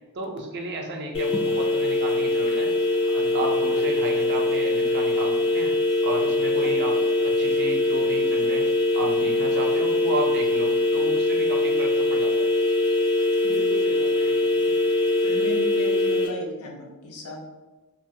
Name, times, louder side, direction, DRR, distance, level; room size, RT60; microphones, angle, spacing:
voice 1, 0.1-2.7 3.1-5.7 6.0-7.0 7.2-8.6 8.9-12.5, right 2 dB, 50° right, 2 dB, 0.4 m, -32 dB
sound 1, 1.1-16.3, left 2 dB, 25° left, 0.3 m, -22 dB
voice 2, 13.4-14.7 15.2-17.5, equal, 90° left, 0 dB, 0.6 m, -36 dB
2.3 x 2.3 x 2.6 m, 1.1 s
head